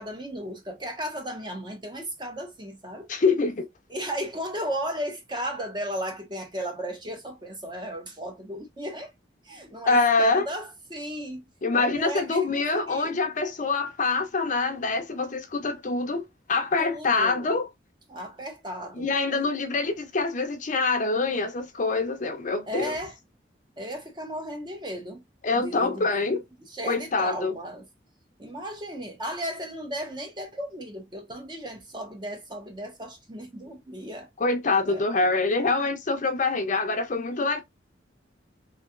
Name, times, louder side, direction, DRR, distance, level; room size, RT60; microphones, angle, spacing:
voice 1, 0.0-3.1 3.9-9.1 9.4-13.2 16.8-17.5 18.1-19.1 22.7-23.2 23.8-25.2 25.5-26.1 26.7-27.9 28.4-34.3 34.8-35.0, equal, 25° right, 0.9 m, -35 dB
voice 2, 3.1-3.7 9.9-10.5 11.6-16.2 16.5-17.7 19.0-22.9 25.4-26.4 26.9-27.5 34.4-37.6, left 3 dB, 45° left, 0.6 m, -25 dB
3.1 x 2.7 x 2.4 m
head